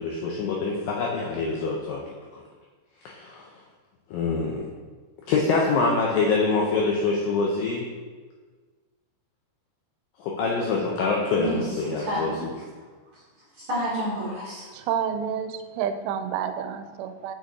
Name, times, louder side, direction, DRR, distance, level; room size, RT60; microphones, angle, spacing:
voice 1, 0.0-2.0 3.0-3.5 4.1-4.7 5.3-7.9 10.2-12.5, left 4 dB, 85° left, -2 dB, 2.0 m, -25 dB
voice 2, 11.4-12.4 13.6-14.6, equal, 55° right, -8 dB, 1.5 m, -29 dB
voice 3, 14.7-17.4, right 8 dB, 90° right, 9 dB, 2.7 m, -29 dB
6.5 x 6.2 x 3.5 m, 1.4 s
omnidirectional pair, 4.9 m